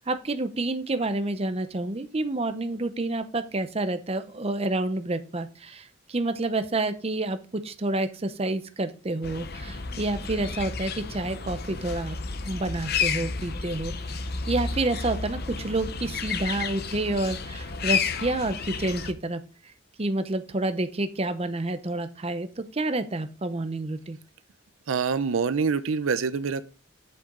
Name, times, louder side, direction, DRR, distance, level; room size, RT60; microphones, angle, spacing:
voice 1, 0.1-12.2 12.4-14.2 14.5-19.4 20.0-24.2, right 2 dB, 30° right, 10 dB, 0.7 m, -29 dB
sound 1, 9.2-19.1, left 5 dB, 50° left, 0.8 m, -32 dB
voice 2, 24.9-26.6, right 5 dB, 75° right, 14 dB, 0.5 m, -25 dB
7.9 x 7.0 x 3.7 m, 0.37 s
head